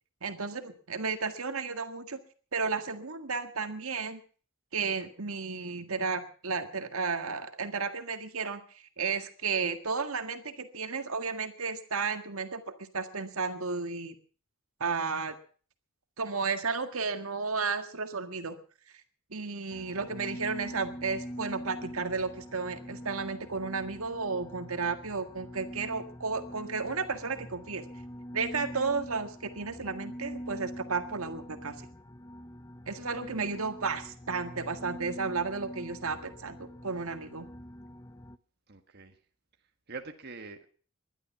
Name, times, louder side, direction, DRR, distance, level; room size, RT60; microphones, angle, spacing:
voice 1, 0.2-2.2 2.5-4.2 4.7-14.2 14.8-15.4 16.2-18.6 19.3-27.8 28.3-31.8 32.9-37.5, right 4 dB, 75° right, 8 dB, 1.8 m, -33 dB
sound 1, 19.7-38.4, equal, 15° left, 0.7 m, -44 dB
voice 2, 38.7-39.2 39.9-40.7, right 4 dB, 50° right, 5 dB, 1.6 m, -43 dB
20.5 x 12.0 x 5.9 m, 0.43 s
head